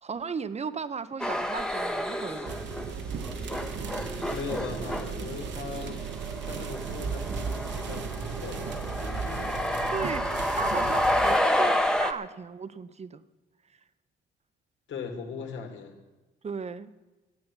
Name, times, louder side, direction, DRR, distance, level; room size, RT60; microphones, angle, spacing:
voice 1, 0.0-2.6 4.0-4.1 9.9-13.2 16.4-16.9, right 5 dB, 35° right, 13 dB, 0.9 m, -36 dB
sound 1, 1.2-2.9 3.1-12.1, left 1 dB, 5° left, 1.1 m, -29 dB
sound 2, 2.5-11.4, right 6 dB, 65° right, 1.3 m, -36 dB
voice 2, 4.3-6.0 6.4-10.0 14.9-16.0, left 5 dB, 70° left, 3 dB, 2.9 m, -39 dB
13.5 x 8.8 x 10.0 m, 1.2 s
cardioid pair, 90°, 20 cm